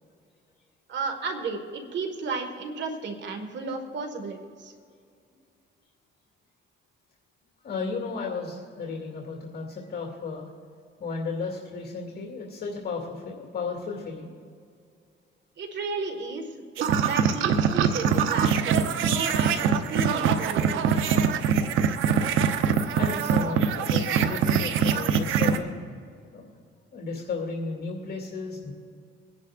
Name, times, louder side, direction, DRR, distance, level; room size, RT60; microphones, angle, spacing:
voice 1, 0.9-4.7 15.6-16.5 16.8-20.9, right 4 dB, 65° right, 5 dB, 1.7 m, -33 dB
voice 2, 7.6-10.5 11.0-14.3 23.0-25.8 26.3-26.5 26.9-28.7, left 4 dB, 55° left, -1 dB, 2.4 m, -34 dB
sound 1, 16.8-25.6, right 7 dB, 85° right, 0.8 m, -23 dB
23.5 x 10.5 x 2.5 m, 2.3 s
cardioid pair, 90°, 20 cm